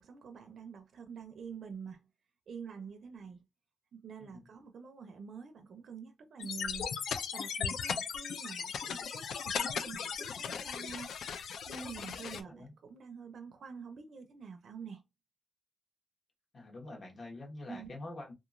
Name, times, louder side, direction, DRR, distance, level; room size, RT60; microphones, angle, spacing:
voice 1, 0.0-2.0 2.5-3.4 3.9-6.9 7.3-11.1 11.7-15.0 17.7-17.9, right 6 dB, 65° right, 0.4 m, -47 dB
sound 1, 6.4-12.4, left 7 dB, 85° left, 0.3 m, -37 dB
voice 2, 12.3-12.7 16.5-18.3, left 2 dB, 40° left, 1.1 m, -46 dB
2.9 x 2.4 x 2.5 m
cardioid pair, 110°, 0 cm